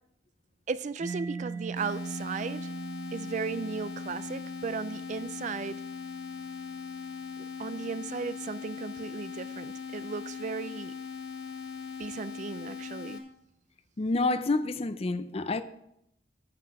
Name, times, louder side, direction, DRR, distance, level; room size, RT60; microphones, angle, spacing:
voice 1, 0.7-2.7 3.1-5.9 7.6-10.9 12.0-13.2, right 5 dB, 40° right, 0.3 m, -36 dB
Mallet percussion, 1.0-8.5, right 5 dB, 15° right, 3.7 m, -42 dB
sound 1, 1.8-13.2, left 6 dB, 75° left, 1.2 m, -40 dB
voice 2, 14.0-15.6, left 3 dB, 35° left, 0.5 m, -28 dB
9.3 x 7.7 x 4.9 m
head